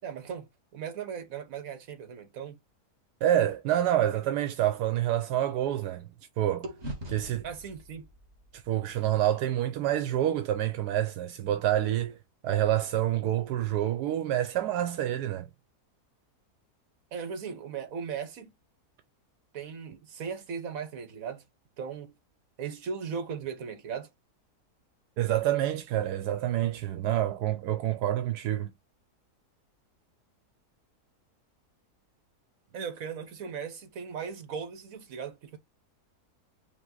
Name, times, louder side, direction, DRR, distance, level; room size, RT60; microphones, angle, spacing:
voice 1, 0.0-2.6 7.4-8.1 17.1-18.5 19.5-21.4 21.8-22.1 22.6-24.1 32.7-35.6, right 6 dB, 60° right, 1.4 m, -38 dB
voice 2, 3.2-6.1 6.4-6.7 7.1-7.4 8.5-12.2 12.4-15.5 25.2-28.7, right 12 dB, 85° right, 1.2 m, -27 dB
sound 1, 4.6-6.2 6.6-10.9, right 1 dB, 45° right, 1.9 m, -46 dB
5.5 x 2.3 x 3.7 m
omnidirectional pair, 1.7 m